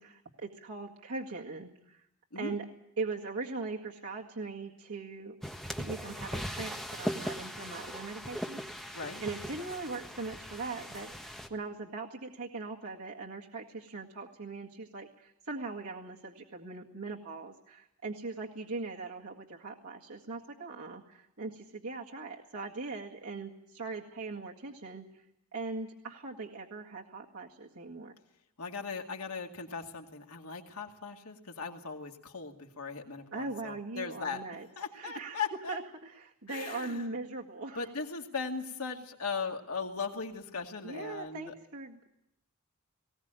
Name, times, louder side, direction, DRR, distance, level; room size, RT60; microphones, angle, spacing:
voice 1, 0.0-2.0 2.4-2.7 3.0-5.4 5.8-25.1 25.5-28.1 33.3-34.7 34.9-35.4 35.7-37.9 40.8-42.1, right 3 dB, 80° right, -2 dB, 2.0 m, -40 dB
sound 1, 5.4-11.5, equal, ahead, 1.4 m, -39 dB
voice 2, 8.9-9.2 28.6-34.4 34.8-35.8 36.5-37.1 37.7-41.5, left 5 dB, 80° left, 2 dB, 2.4 m, -38 dB
20.0 x 18.0 x 9.0 m, 0.82 s
head